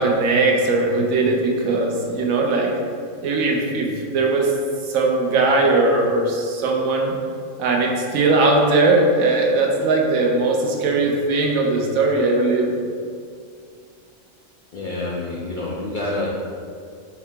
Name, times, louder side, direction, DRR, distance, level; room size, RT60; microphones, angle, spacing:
voice 1, 0.0-2.7 3.2-4.5 4.8-7.2 7.6-12.7, right 3 dB, 85° right, 0 dB, 1.1 m, -19 dB
voice 2, 14.7-16.4, left 2 dB, 65° left, -5 dB, 0.5 m, -27 dB
4.6 x 2.8 x 3.3 m, 2.2 s
omnidirectional pair, 1.4 m